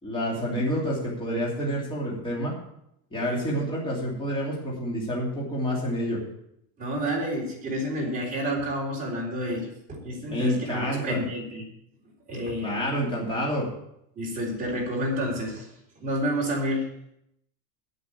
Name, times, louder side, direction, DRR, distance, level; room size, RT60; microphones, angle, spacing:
voice 1, 0.0-2.5 3.1-6.2 10.3-11.2 12.6-13.7, equal, 10° left, -5 dB, 2.9 m, -28 dB
voice 2, 6.8-11.6 12.3-12.7 14.2-15.7 16.0-16.8, equal, 15° right, -4 dB, 3.9 m, -29 dB
8.5 x 8.4 x 8.4 m, 0.78 s
supercardioid pair, 160°, 47 cm